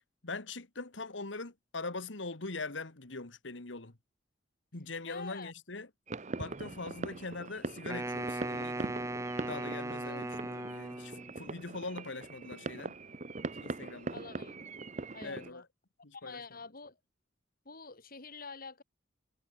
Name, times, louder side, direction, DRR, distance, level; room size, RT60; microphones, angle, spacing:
voice 1, 0.2-4.0 4.7-5.9 6.4-9.0 9.5-13.0 13.6-14.2 15.2-15.6 16.0-16.6, left 3 dB, 75° left, 1.9 m, -42 dB
voice 2, 5.1-5.5 10.0-10.4 14.1-14.5 15.1-15.6 16.1-17.0 17.6-18.8, left 4 dB, 50° left, 3.3 m, -47 dB
sound 1, 6.1-15.5, right 3 dB, 40° right, 1.0 m, -42 dB
Wind instrument woodwind instrument, 7.9-11.4, right 2 dB, 15° right, 1.3 m, -38 dB
head